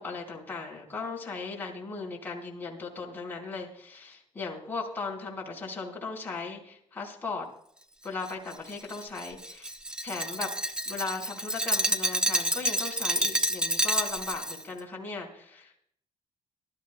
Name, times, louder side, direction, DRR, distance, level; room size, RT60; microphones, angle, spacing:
voice 1, 0.0-7.5 8.0-9.8 10.0-10.5 10.9-15.9, left 4 dB, 15° left, -3 dB, 4.2 m, -37 dB
Glass, 8.3-14.6, right 1 dB, 5° right, 0.9 m, -29 dB
23.0 x 13.0 x 2.2 m, 0.66 s
cardioid pair, 135°, 12 cm